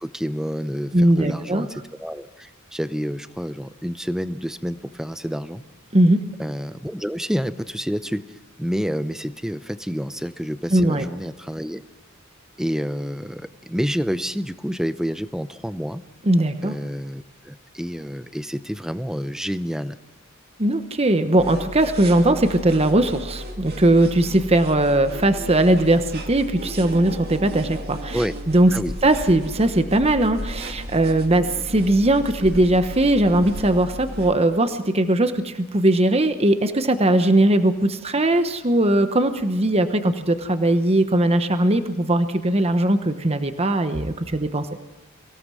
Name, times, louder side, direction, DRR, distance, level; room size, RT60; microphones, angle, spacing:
voice 1, 0.0-5.6 6.4-8.2 8.6-11.8 12.6-16.0 16.6-20.0 28.1-28.3 28.7-28.9, equal, 5° right, 12 dB, 0.6 m, -28 dB
voice 2, 0.9-1.7 5.9-6.2 10.7-11.1 16.3-16.7 20.6-28.2 28.5-28.7 29.0-44.7, right 1 dB, 30° right, 9 dB, 1.0 m, -19 dB
sound 1, 21.4-34.3, equal, 50° right, 2.4 m, -34 dB
24.0 x 17.0 x 6.3 m, 1.1 s
head